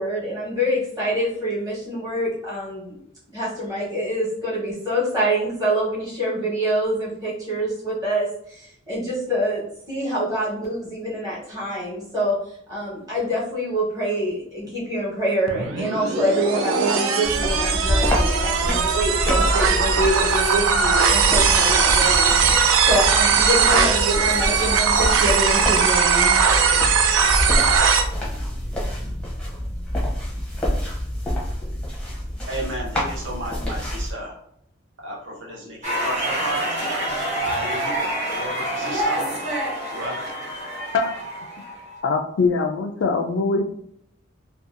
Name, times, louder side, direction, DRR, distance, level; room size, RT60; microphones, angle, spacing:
voice 1, 0.0-3.0 3.3-9.6 9.9-12.4 12.7-26.4, equal, 20° right, -8 dB, 1.1 m, -25 dB
sound 1, 15.5-28.0, right 6 dB, 90° right, 0.4 m, -19 dB
sound 2, 17.2-34.1, equal, 5° left, 0.6 m, -26 dB
voice 2, 32.5-34.4 35.0-36.9 37.4-39.4 39.9-40.3, right 1 dB, 70° right, -2 dB, 0.8 m, -33 dB
sound 3, 35.8-42.0, right 1 dB, 35° right, 0.9 m, -27 dB
voice 3, 42.0-43.7, left 4 dB, 65° left, 6 dB, 0.3 m, -22 dB
2.6 x 2.3 x 2.5 m, 0.70 s
head